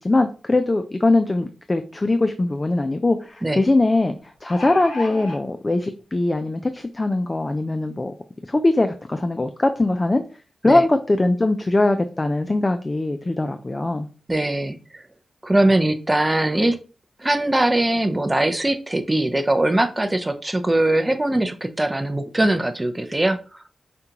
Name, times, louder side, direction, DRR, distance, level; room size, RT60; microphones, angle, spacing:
voice 1, 0.0-4.1 4.4-8.1 8.5-10.2 10.6-14.1, left 2 dB, 30° left, 8 dB, 0.4 m, -21 dB
sound 1, 2.1-2.2 2.5-2.6 4.2-5.4 6.3-6.4 6.8-6.9, left 2 dB, 70° left, 1.2 m, -33 dB
voice 2, 14.3-15.0 15.4-16.8 17.2-23.4, right 1 dB, 20° right, 8 dB, 0.5 m, -21 dB
5.1 x 2.3 x 2.8 m, 0.36 s
cardioid pair, 60°, 0 cm